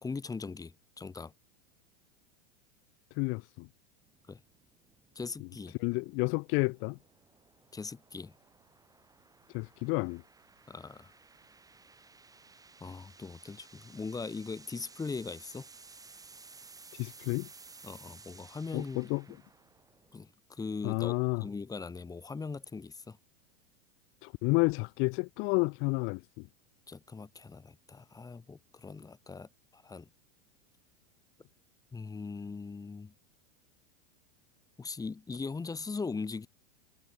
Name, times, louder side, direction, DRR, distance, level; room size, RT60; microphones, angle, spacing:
voice 1, 0.0-1.3 4.3-4.4 5.2-5.8 7.7-8.3 10.7-11.1 12.8-15.7 17.8-19.1 20.1-23.2 26.9-30.1 31.9-33.1 34.8-36.5, left 4 dB, 10° left, 3.7 m, -40 dB
voice 2, 3.1-3.7 5.8-7.0 9.5-10.2 16.9-17.5 18.7-19.2 20.8-21.5 24.2-26.5, left 29 dB, 40° left, 0.7 m, -30 dB
sound 1, 4.1-20.3, right 4 dB, 10° right, 7.3 m, -56 dB
supercardioid pair, 140°, 31 cm